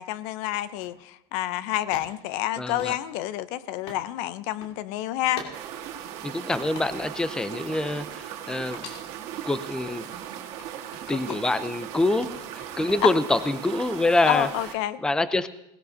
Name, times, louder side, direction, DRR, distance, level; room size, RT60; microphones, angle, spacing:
voice 1, 0.0-5.4 11.3-11.4 13.0-13.1 14.2-15.0, left 14 dB, 65° left, 15 dB, 0.6 m, -28 dB
sound 1, 0.8-1.0 1.9-4.1 4.4-4.8 5.3-5.6 6.0-7.2 7.6-8.5 8.7-10.3 10.6-11.7 12.0-13.3, left 4 dB, 85° left, 2.6 m, -45 dB
voice 2, 2.6-3.0 6.2-8.9 9.4-10.1 11.1-12.4 12.7-14.5 15.0-15.5, left 2 dB, 5° left, 13 dB, 0.5 m, -25 dB
sound 2, 5.5-14.7, right 10 dB, 55° right, 1.7 m, -38 dB
17.5 x 17.0 x 2.7 m, 0.83 s
supercardioid pair, 125°, 13 cm